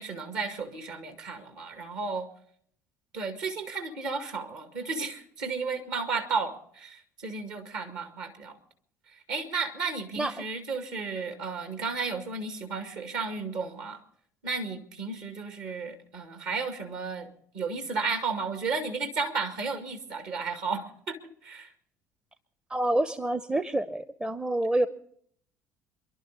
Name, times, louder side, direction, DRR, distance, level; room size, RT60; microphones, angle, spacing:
voice 1, 0.0-2.3 3.1-8.6 9.3-14.0 14.4-17.3 17.5-21.2 21.4-21.7, right 4 dB, 60° right, 6 dB, 2.1 m, -33 dB
voice 2, 22.7-24.9, right 1 dB, 10° right, 14 dB, 0.7 m, -27 dB
26.5 x 12.0 x 4.1 m, 0.64 s
figure-of-eight pair, 55°, 8 cm